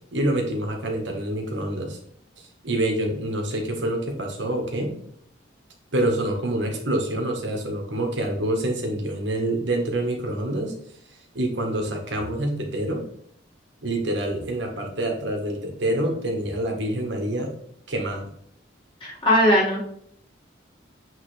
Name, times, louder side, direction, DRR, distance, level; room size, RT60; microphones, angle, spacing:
voice 1, 0.1-2.0 2.4-4.9 5.9-10.7 11.3-13.0 13.8-17.5 17.9-18.2, right 1 dB, 70° right, 2 dB, 1.4 m, -26 dB
voice 2, 19.0-19.8, equal, 25° left, -5 dB, 2.0 m, -19 dB
8.0 x 3.5 x 3.3 m, 0.66 s
head